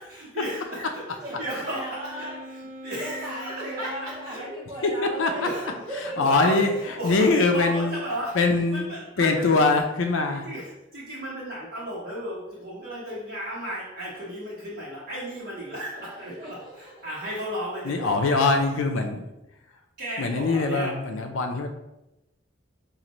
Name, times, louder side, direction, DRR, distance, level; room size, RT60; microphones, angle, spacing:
voice 1, 0.3-4.4 5.3-5.6 6.2-8.4 8.7-9.7 10.3-18.5 20.0-21.0, right 1 dB, 50° right, -10 dB, 1.1 m, -35 dB
voice 2, 1.2-2.4 3.0-6.4 8.5-8.8 16.0-17.1, right 1 dB, 20° right, -6 dB, 0.6 m, -37 dB
Wind instrument woodwind instrument, 1.7-4.6, equal, 75° right, 0.5 m, -42 dB
voice 3, 6.2-6.7 7.0-8.0 8.4-8.9 9.2-10.5 17.9-19.3 20.2-21.7, left 3 dB, 85° left, 4 dB, 0.5 m, -22 dB
5.3 x 2.5 x 3.0 m, 0.93 s
head